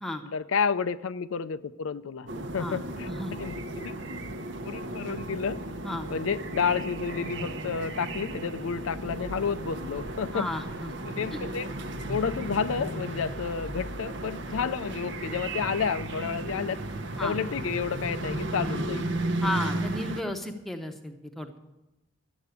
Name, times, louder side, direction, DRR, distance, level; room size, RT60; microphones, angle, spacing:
voice 1, 0.2-4.0 4.6-5.6 6.1-10.5 11.1-11.7 12.1-16.8 17.2-19.1, left 6 dB, 80° left, 13 dB, 0.5 m, -30 dB
sound 1, 2.3-20.2, right 1 dB, 60° right, 0.8 m, -34 dB
voice 2, 3.0-3.4 5.8-6.1 10.3-10.9 11.3-11.4 17.2-17.4 19.4-21.6, left 1 dB, ahead, 4 dB, 0.9 m, -33 dB
12.5 x 7.9 x 8.2 m, 0.99 s
head